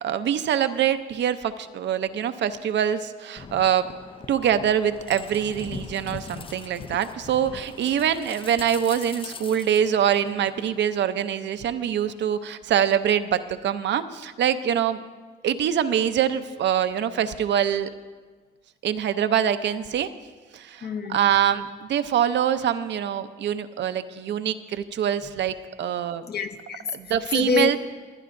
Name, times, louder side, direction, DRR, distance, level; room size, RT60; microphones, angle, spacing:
voice 1, 0.0-3.9 4.3-15.0 15.4-17.9 18.8-20.1 20.5-26.2 26.9-27.8, right 9 dB, 65° right, 11 dB, 0.6 m, -24 dB
sound 1, 3.4-10.8, left 5 dB, 25° left, 0.5 m, -41 dB
voice 2, 20.8-21.2 25.8-25.9 26.3-27.8, left 5 dB, 55° left, 5 dB, 1.0 m, -27 dB
27.0 x 10.0 x 2.6 m, 1.4 s
cardioid pair, 90°, 20 cm